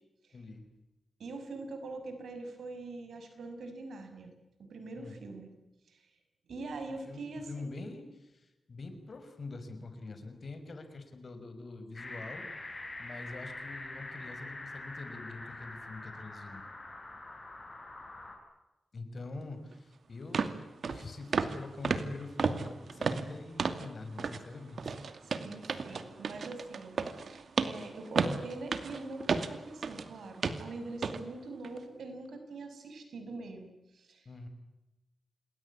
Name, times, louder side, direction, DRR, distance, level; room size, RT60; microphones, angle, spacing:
voice 1, 0.3-0.7 5.0-5.2 6.9-12.5 13.0-16.6 18.9-25.0 34.3-34.5, left 3 dB, 50° left, 8 dB, 5.8 m, -45 dB
voice 2, 1.2-4.3 4.6-5.5 5.9-6.1 6.5-7.7 25.4-27.0 27.3-34.3, right 3 dB, 85° right, 7 dB, 6.2 m, -43 dB
sound 1, 11.9-18.4, left 2 dB, 30° left, 8.0 m, -44 dB
sound 2, 19.7-19.8 20.3-20.6 20.8-21.0 21.3-21.6 21.8-23.9 24.2-24.4 24.8-30.1 30.4-30.7 31.0-31.2 31.6-31.8, right 5 dB, 65° right, 2.4 m, -33 dB
28.5 x 21.0 x 9.8 m, 0.99 s
wide cardioid pair, 110°, 0 cm